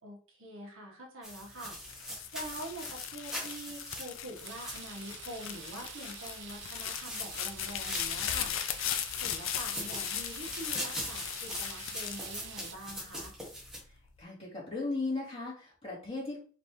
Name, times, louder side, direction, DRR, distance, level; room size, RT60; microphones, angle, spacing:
voice 1, 0.0-1.8 2.3-8.9 9.2-13.3, right 1 dB, 85° right, -1 dB, 1.6 m, -45 dB
sound 1, 1.2-5.9 6.8-8.8 9.4-13.8, equal, 5° right, 1.4 m, -42 dB
sound 2, 1.8-13.1 13.6-14.2, left 10 dB, 75° left, 0.5 m, -38 dB
sound 3, 4.4-12.7, right 8 dB, 60° right, 0.6 m, -48 dB
voice 2, 14.2-16.4, left 3 dB, 30° left, -7 dB, 2.5 m, -36 dB
5.1 x 3.2 x 3.2 m, 0.42 s
head